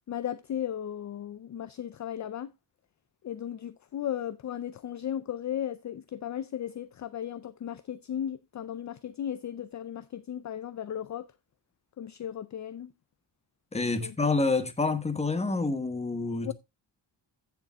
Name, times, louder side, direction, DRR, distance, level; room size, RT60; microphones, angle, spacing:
voice 1, 0.1-2.5 3.2-11.3 12.0-12.9 14.0-14.1 16.4-16.5, left 10 dB, 40° left, 0.5 m, -36 dB
voice 2, 13.7-16.5, left 3 dB, 15° left, 1.1 m, -28 dB
15.5 x 6.9 x 2.3 m
wide cardioid pair, 165°, 44 cm